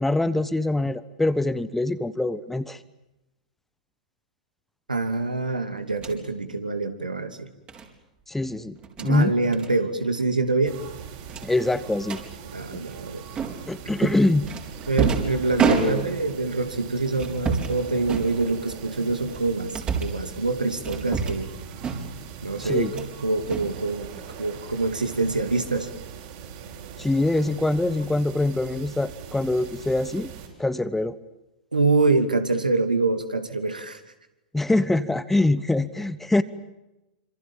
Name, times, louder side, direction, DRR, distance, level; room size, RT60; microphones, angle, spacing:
voice 1, 0.0-2.8 8.3-8.8 9.0-9.3 11.4-12.2 12.7-12.8 13.7-14.5 15.8-16.1 22.6-22.9 27.0-30.3 30.6-31.2 34.5-36.4, left 2 dB, 5° left, 14 dB, 1.2 m, -24 dB
voice 2, 4.9-7.5 9.0-10.8 12.5-13.2 14.0-14.1 14.9-21.5 22.4-24.1 24.4-25.9 31.7-34.0, right 3 dB, 80° right, 8 dB, 2.7 m, -25 dB
sound 1, 5.9-6.2 7.7-7.9 8.8-9.1 9.5-9.7 10.0-10.2 10.5-10.6 11.3-12.2 13.4-13.8 14.5-16.3 17.1-17.8 18.1-18.8 19.3-20.2 20.8-21.5 21.8-22.3 22.6-23.1 23.4-24.3, right 5 dB, 25° right, 4.7 m, -29 dB
sound 2, 10.6-30.5, right 7 dB, 45° right, 7.6 m, -41 dB
27.0 x 26.5 x 7.4 m, 0.97 s
figure-of-eight pair, 100°, 4 cm